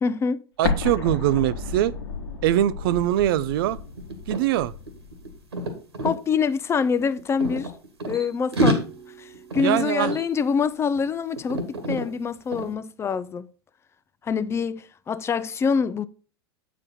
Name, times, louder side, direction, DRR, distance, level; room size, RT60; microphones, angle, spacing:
voice 1, 0.0-0.4 6.0-7.7 8.1-8.9 9.2-13.5 14.2-16.1, left 6 dB, 20° left, 0.5 m, -25 dB
Explosion, 0.6-5.4, left 4 dB, 75° left, 1.2 m, -32 dB
voice 2, 0.6-1.9 2.4-3.8 4.3-4.7 9.6-10.2, right 13 dB, 60° right, 0.5 m, -22 dB
sound 1, 2.9-3.1 3.4-6.2 7.0-8.2 8.5-11.1 11.4-12.1 12.5-12.7, right 1 dB, 85° right, 1.8 m, -29 dB
8.3 x 5.1 x 4.2 m
hypercardioid pair, 95°, 13 cm